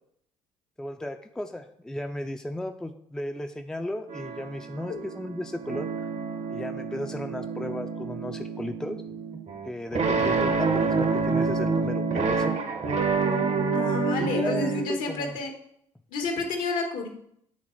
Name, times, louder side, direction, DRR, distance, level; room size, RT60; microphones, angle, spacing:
voice 1, 0.8-5.9 6.5-9.0 9.6-12.5 14.2-15.4, left 1 dB, 5° left, 5 dB, 0.5 m, -35 dB
sound 1, 4.1-14.8, right 4 dB, 45° right, 0.9 m, -28 dB
voice 2, 13.7-15.5 16.1-17.1, left 3 dB, 60° left, 4 dB, 1.2 m, -30 dB
8.7 x 3.7 x 3.1 m, 0.70 s
hypercardioid pair, 50°, 16 cm